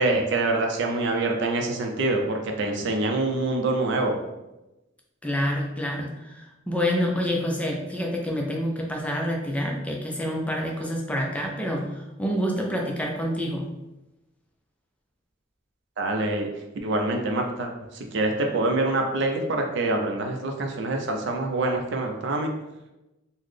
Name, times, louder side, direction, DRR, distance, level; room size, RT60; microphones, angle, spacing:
voice 1, 0.0-4.2 16.0-16.5 16.8-22.5, right 2 dB, 65° right, 3 dB, 0.5 m, -25 dB
voice 2, 5.2-13.6, equal, 5° left, -1 dB, 0.4 m, -27 dB
3.9 x 2.1 x 3.2 m, 0.97 s
head